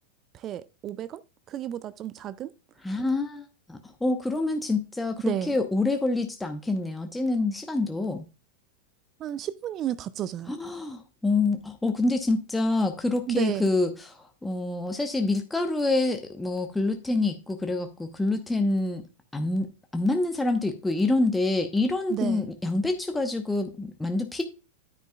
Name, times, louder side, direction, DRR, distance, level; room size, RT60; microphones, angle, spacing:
voice 1, 0.3-2.5 5.3-5.6 9.2-10.5 13.3-13.7 22.1-22.5, right 11 dB, 30° right, 0.4 m, -32 dB
voice 2, 2.8-8.2 10.5-19.0 19.3-24.4, left 2 dB, 5° left, 0.9 m, -27 dB
10.0 x 9.1 x 2.3 m
figure-of-eight pair, 90°, 0 cm